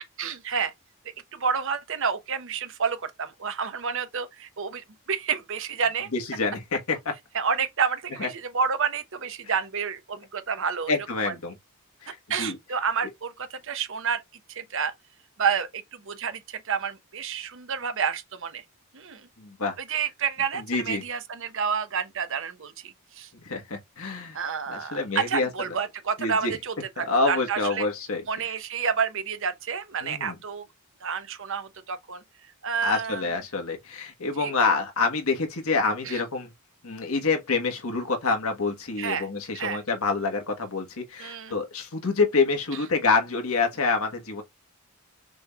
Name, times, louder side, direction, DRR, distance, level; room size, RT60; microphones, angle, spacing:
voice 1, 0.2-0.7 1.3-6.1 7.3-11.0 11.2-11.3 12.1-14.2 14.5-14.9 15.4-18.6 18.9-19.3 19.8-23.3 24.3-27.9 28.3-30.7 31.0-32.2 32.6-33.2 34.4-34.5 36.0-36.2 39.0-39.3 39.5-39.8 41.2-41.5, right 6 dB, 60° right, 0.8 m, -29 dB
voice 2, 6.1-7.1 8.2-8.3 9.4-9.5 10.9-11.5 12.0-12.6 19.4-19.7 20.5-21.0 23.4-24.4 24.7-25.5 26.2-26.6 27.0-28.2 30.0-30.4 32.8-36.5 36.8-44.4, left 4 dB, 70° left, 1.3 m, -27 dB
6.1 x 3.2 x 2.3 m
head